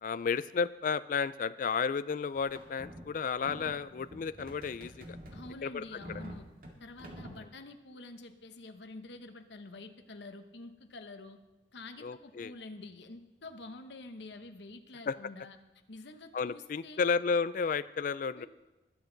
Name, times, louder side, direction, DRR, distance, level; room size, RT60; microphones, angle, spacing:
voice 1, 0.0-5.2 5.6-5.8 7.3-7.4 12.0-12.5 15.1-15.2 16.3-18.5, left 5 dB, 45° left, 15 dB, 0.3 m, -32 dB
sound 1, 2.4-7.4, equal, 55° right, 2.0 m, -48 dB
voice 2, 5.3-6.5 6.8-11.4 11.7-15.6 15.9-17.1 18.4-18.5, left 2 dB, 80° left, 7 dB, 1.0 m, -48 dB
21.0 x 8.1 x 3.9 m, 1.1 s
head